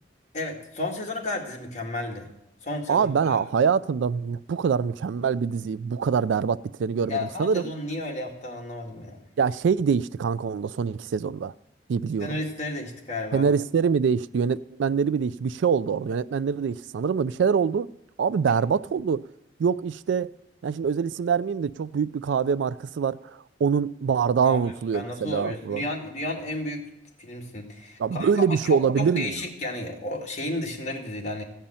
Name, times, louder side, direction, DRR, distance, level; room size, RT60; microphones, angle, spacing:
voice 1, 0.3-2.3 2.6-3.4 7.0-9.2 12.2-13.4 24.4-24.6 24.9-26.8 27.2-31.4, left 2 dB, 40° left, 2.1 m, -32 dB
voice 2, 2.9-7.6 9.4-11.5 11.9-12.4 13.3-17.9 18.2-19.2 19.6-20.3 20.6-25.8 28.0-29.3, right 6 dB, 75° right, 0.3 m, -24 dB
14.5 x 5.6 x 8.8 m
head